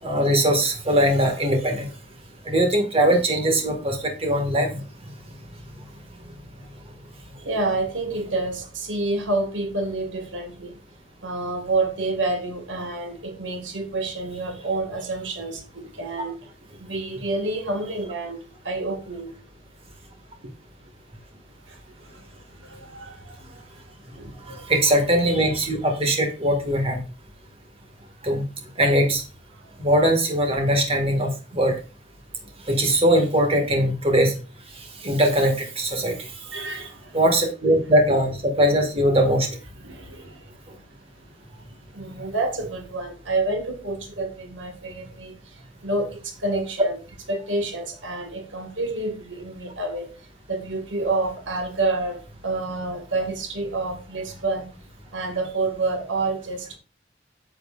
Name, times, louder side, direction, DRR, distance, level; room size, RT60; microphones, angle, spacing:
voice 1, 0.0-1.9 2.5-4.8 24.5-27.0 28.2-28.4 28.8-29.2 29.8-31.8 32.7-34.4 35.0-36.3 37.1-39.6, right 1 dB, 30° right, 2.0 m, -21 dB
voice 2, 7.5-10.7 11.2-16.4 16.8-18.4 18.6-19.3 21.7-21.8 22.6-23.6 24.2-24.6 36.4-37.1 39.8-40.5 41.9-47.0 47.3-50.1 50.5-54.7 55.1-56.8, right 2 dB, 90° right, 1.9 m, -28 dB
9.1 x 7.9 x 2.5 m
head